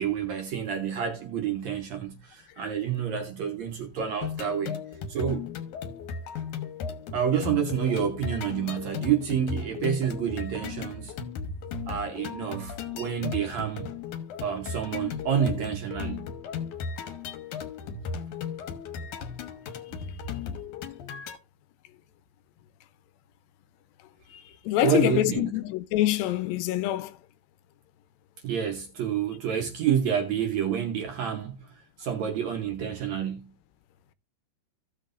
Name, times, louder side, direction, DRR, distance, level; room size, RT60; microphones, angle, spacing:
voice 1, 0.0-4.8 5.1-5.5 7.1-11.1 11.9-13.9 14.4-16.2 24.8-25.5 28.4-31.7 32.0-33.5, right 8 dB, 65° right, 1.9 m, -28 dB
sound 1, 4.2-21.4, left 6 dB, 70° left, 2.4 m, -36 dB
voice 2, 24.3-27.1, left 15 dB, 85° left, 2.5 m, -26 dB
15.5 x 6.3 x 2.5 m
omnidirectional pair, 4.0 m